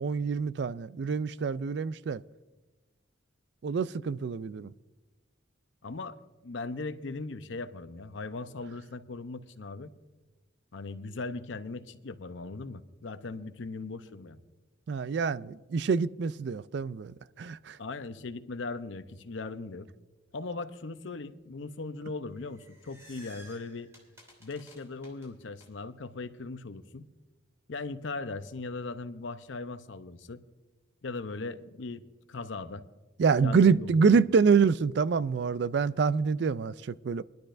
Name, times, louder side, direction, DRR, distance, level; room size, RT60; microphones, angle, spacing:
voice 1, 0.0-2.2 3.6-4.7 14.9-17.8 33.2-37.2, right 5 dB, 60° right, 0.3 m, -26 dB
voice 2, 5.8-6.2 6.4-9.9 10.7-14.4 17.8-19.9 20.3-23.9 24.4-27.1 27.7-30.4 31.0-32.0 32.3-32.8 33.4-34.1, left 3 dB, 70° left, 0.7 m, -39 dB
sound 1, 22.3-25.7, equal, 15° right, 2.8 m, -54 dB
21.0 x 12.0 x 2.6 m
head